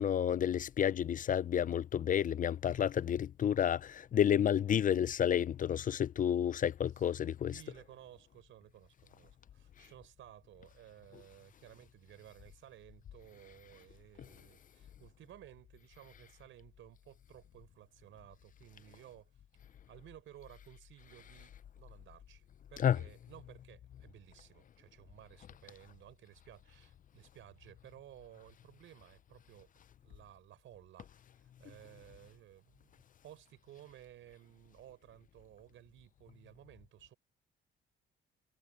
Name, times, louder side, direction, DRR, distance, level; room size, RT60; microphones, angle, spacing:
voice 1, 0.0-7.5 22.8-23.0, left 9 dB, 45° left, 0.4 m, -30 dB
voice 2, 7.5-22.4 22.7-29.7 30.0-37.1, right 12 dB, 80° right, 5.0 m, -57 dB
cardioid pair, 90°, 20 cm